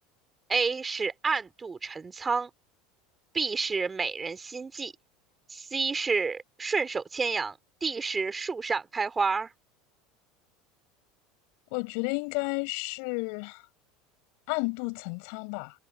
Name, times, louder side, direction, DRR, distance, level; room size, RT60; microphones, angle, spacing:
voice 1, 0.5-2.5 3.3-4.9 5.5-9.5, right 4 dB, 20° right, 3.2 m, -29 dB
voice 2, 11.7-13.6 14.5-15.7, left 34 dB, 70° left, 6.6 m, -32 dB
hypercardioid pair, 95°, 0 cm